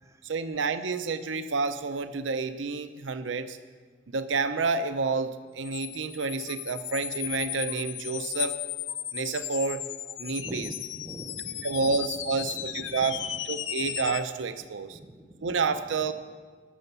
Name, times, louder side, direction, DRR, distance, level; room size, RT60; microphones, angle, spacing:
voice 1, 0.2-3.6 4.1-8.5 9.1-9.8 10.2-10.7 11.6-13.2 13.5-15.0 15.4-16.1, right 4 dB, 80° right, 11 dB, 0.6 m, -29 dB
sound 1, 5.6-14.2, left 12 dB, 75° left, 0.6 m, -35 dB
voice 2, 10.4-12.0 12.4-13.2 14.9-15.5, right 1 dB, 15° right, 7 dB, 0.7 m, -44 dB
12.5 x 7.0 x 6.8 m, 1.5 s
head